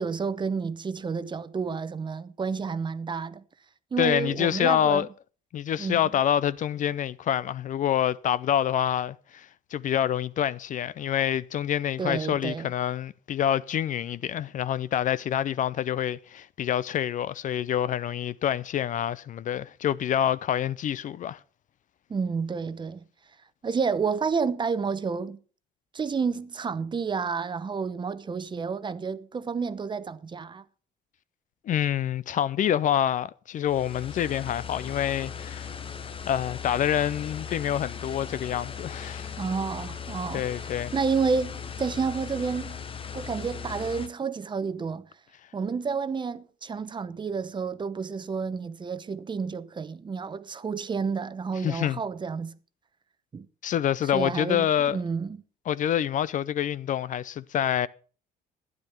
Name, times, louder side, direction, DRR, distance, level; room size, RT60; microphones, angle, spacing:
voice 1, 0.0-3.4 3.9-5.1 5.8-6.0 12.0-12.7 22.1-23.0 23.6-25.4 25.9-30.6 39.4-42.8 43.1-45.1 45.5-52.5 53.3-53.5 54.1-55.4, right 5 dB, 25° right, 0.8 m, -30 dB
voice 2, 4.0-5.1 5.5-21.4 31.7-35.7 36.3-39.3 40.3-40.9 51.6-52.0 53.6-55.0 55.7-57.9, left 10 dB, 50° left, 0.5 m, -27 dB
sound 1, 33.7-44.1, left 7 dB, 30° left, 1.0 m, -38 dB
12.0 x 9.9 x 5.8 m
cardioid pair, 110°, 17 cm